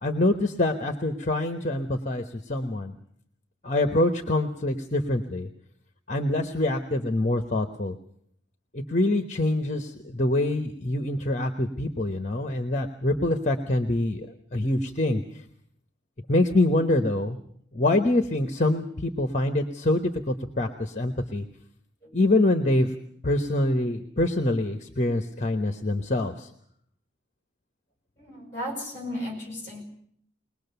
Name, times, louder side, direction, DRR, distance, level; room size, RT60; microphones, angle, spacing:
voice 1, 0.0-2.9 3.6-5.5 6.1-7.9 8.7-15.4 16.3-17.4 17.7-21.4 22.1-22.9 23.2-26.5, left 2 dB, 35° left, 6 dB, 1.0 m, -25 dB
voice 2, 28.2-29.8, left 1 dB, 15° left, 0 dB, 6.2 m, -35 dB
21.0 x 21.0 x 6.9 m, 0.67 s
head